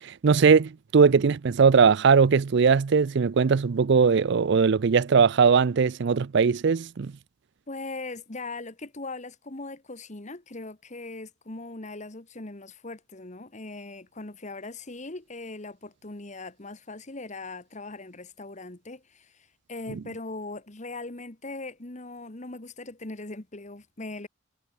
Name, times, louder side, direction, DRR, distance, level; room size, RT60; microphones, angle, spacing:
voice 1, 0.0-7.1, right 5 dB, 60° right, 0.5 m, -20 dB
voice 2, 7.7-24.3, left 2 dB, 35° left, 1.5 m, -40 dB
head